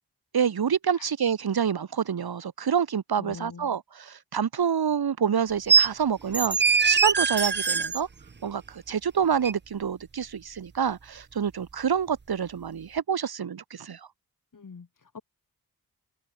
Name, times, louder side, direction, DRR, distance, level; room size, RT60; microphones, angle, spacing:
voice 1, 0.3-6.6 6.8-8.1 8.4-14.0, right 7 dB, 75° right, 2.9 m, -27 dB
voice 2, 3.2-3.8 14.5-15.2, left 5 dB, 55° left, 7.8 m, -44 dB
sound 1, 5.7-5.9 6.3-8.0 9.4-9.5, right 5 dB, 30° right, 0.8 m, -22 dB
open air
cardioid pair, 70°, 37 cm